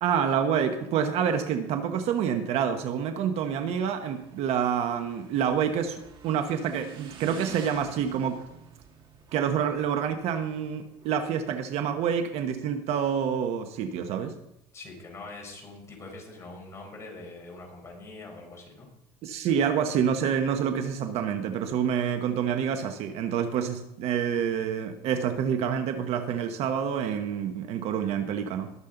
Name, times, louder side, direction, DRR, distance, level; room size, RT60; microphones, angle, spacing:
voice 1, 0.0-8.4 9.3-14.3 19.2-28.7, right 8 dB, 55° right, 7 dB, 1.2 m, -27 dB
Motorcycle / Engine, 3.6-12.6, right 6 dB, 40° right, 2.2 m, -50 dB
voice 2, 14.7-18.9, left 2 dB, 20° left, 0 dB, 4.8 m, -43 dB
20.5 x 7.5 x 3.9 m, 0.78 s
cardioid pair, 140°, 12 cm